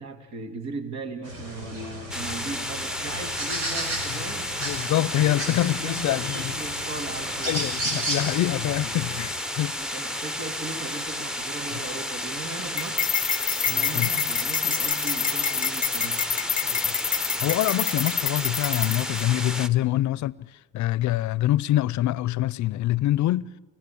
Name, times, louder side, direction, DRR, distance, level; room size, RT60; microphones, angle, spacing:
voice 1, 0.0-4.7 5.2-7.6 9.8-13.0 13.7-16.2, right 3 dB, 60° right, 2.7 m, -38 dB
sound 1, 1.2-9.3, right 1 dB, 85° right, 6.4 m, -34 dB
sound 2, 2.1-19.7, left 1 dB, ahead, 0.9 m, -32 dB
voice 2, 4.6-6.5 7.4-9.7 13.7-14.1 16.7-16.9 17.2-20.3 20.7-23.5, left 14 dB, 60° left, 0.6 m, -25 dB
sound 3, 12.8-19.2, left 7 dB, 25° left, 0.6 m, -27 dB
29.5 x 16.0 x 8.5 m
supercardioid pair, 80°, 32 cm